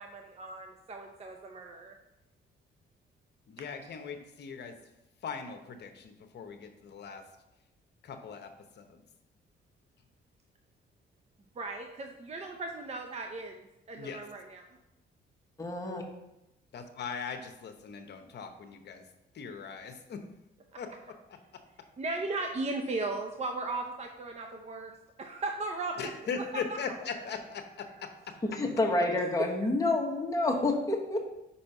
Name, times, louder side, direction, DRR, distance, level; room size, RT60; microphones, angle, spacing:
voice 1, 0.0-1.9 11.6-14.7 20.7-20.8 22.0-24.9 25.2-26.1 26.7-26.8 29.1-29.5, right 3 dB, 35° right, 3 dB, 0.7 m, -37 dB
voice 2, 3.5-4.8 5.2-7.3 8.0-9.0 14.0-14.2 16.7-19.1 19.3-20.2 20.8-21.2 26.0-28.4, left 5 dB, 60° left, 6 dB, 0.9 m, -40 dB
voice 3, 15.6-16.0 28.4-31.2, left 2 dB, 15° left, 0 dB, 1.3 m, -28 dB
5.5 x 4.3 x 5.4 m, 0.90 s
cardioid pair, 90°, 20 cm